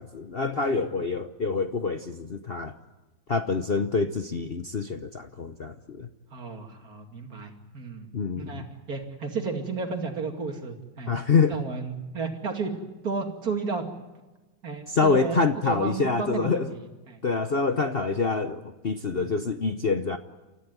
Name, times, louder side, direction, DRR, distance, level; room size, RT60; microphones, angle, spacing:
voice 1, 0.0-2.7 3.3-6.1 8.1-8.6 11.1-11.6 14.9-16.7 17.2-20.2, left 4 dB, 65° left, 9 dB, 0.5 m, -26 dB
voice 2, 6.3-8.1 8.4-11.1 11.5-12.7 13.0-13.9 14.6-17.2 19.1-19.3, right 4 dB, 45° right, 4 dB, 3.0 m, -33 dB
29.0 x 14.5 x 9.4 m, 1.2 s
omnidirectional pair, 2.4 m